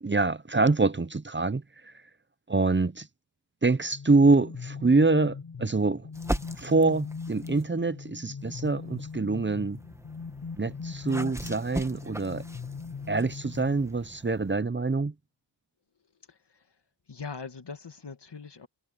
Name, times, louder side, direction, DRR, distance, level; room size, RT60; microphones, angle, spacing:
voice 1, 0.0-1.9 2.5-3.1 3.6-6.1 6.6-9.8 10.6-12.4 13.1-15.1, right 3 dB, 30° right, 0.7 m, -25 dB
sound 1, 3.8-14.3, left 5 dB, 70° left, 1.2 m, -40 dB
sound 2, 6.1-7.7 8.4-14.6, right 1 dB, 5° right, 1.4 m, -40 dB
voice 2, 17.1-18.7, left 5 dB, 85° left, 2.0 m, -41 dB
wide cardioid pair, 50°, 40 cm